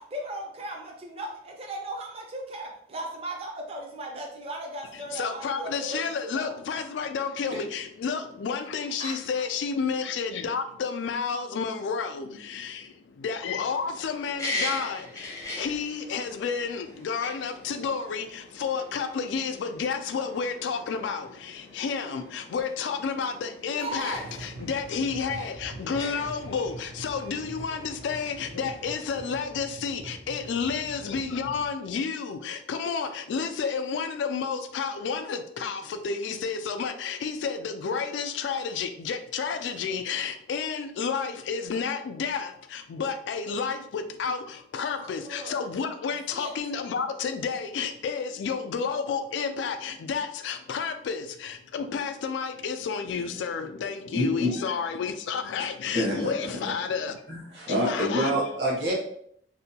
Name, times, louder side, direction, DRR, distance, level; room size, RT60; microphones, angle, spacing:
voice 1, 0.0-6.6 9.0-9.4 23.7-24.3 45.0-45.6 46.3-46.5 57.5-57.6, right 1 dB, 35° right, 0.5 m, -37 dB
voice 2, 4.9-57.2 57.7-58.4, left 5 dB, 75° left, 0.3 m, -31 dB
sound 1, 13.4-29.4, left 2 dB, 20° left, 0.5 m, -41 dB
sound 2, 24.1-31.7, right 2 dB, 80° right, 0.5 m, -44 dB
voice 3, 54.1-54.5 55.9-56.3 56.8-56.9 57.3-58.9, equal, 65° right, 1.1 m, -27 dB
2.7 x 2.2 x 2.7 m
head